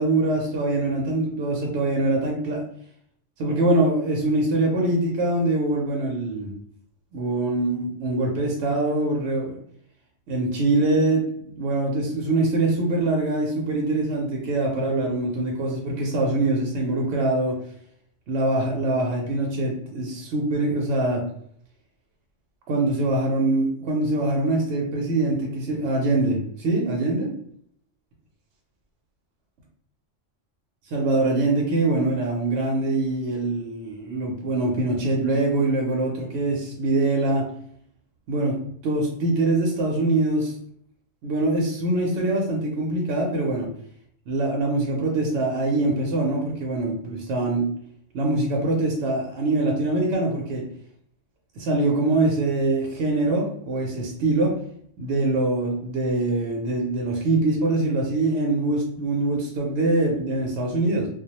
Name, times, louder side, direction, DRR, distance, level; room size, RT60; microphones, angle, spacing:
voice 1, 0.0-2.6 3.4-6.5 7.1-9.6 10.3-17.6 18.3-21.2 22.7-27.3 30.9-37.4 38.3-38.6 38.8-40.5 41.2-43.7 44.3-47.7 48.1-50.6 51.6-54.5 55.0-61.1, right 2 dB, 70° right, -1 dB, 0.8 m, -23 dB
2.3 x 2.0 x 2.8 m, 0.65 s
omnidirectional pair, 1.2 m